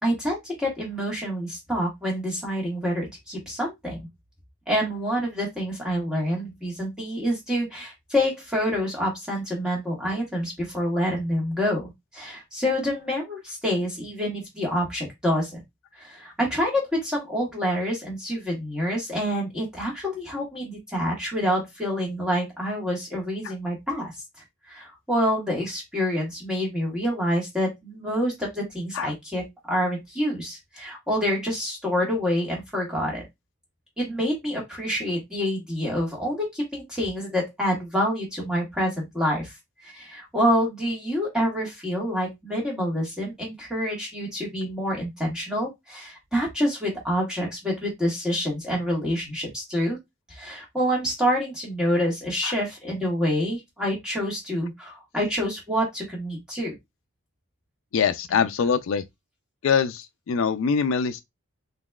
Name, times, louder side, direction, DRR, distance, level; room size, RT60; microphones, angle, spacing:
voice 1, 0.0-4.1 4.7-15.6 16.0-24.1 24.7-33.2 34.0-39.5 39.8-50.0 50.3-56.7, equal, 5° right, 1.5 m, -27 dB
voice 2, 57.9-59.0 59.6-61.2, left 6 dB, 65° left, 0.3 m, -24 dB
3.9 x 3.0 x 2.3 m
head